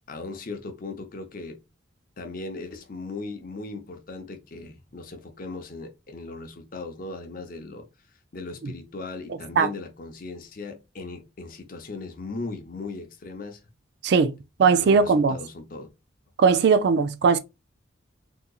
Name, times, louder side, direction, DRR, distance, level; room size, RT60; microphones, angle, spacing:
voice 1, 0.1-1.6 2.2-7.9 8.3-13.6 14.7-15.9, left 3 dB, 45° left, 0.6 m, -38 dB
voice 2, 14.6-15.3 16.4-17.4, right 5 dB, 55° right, 0.3 m, -19 dB
3.7 x 2.8 x 2.3 m
head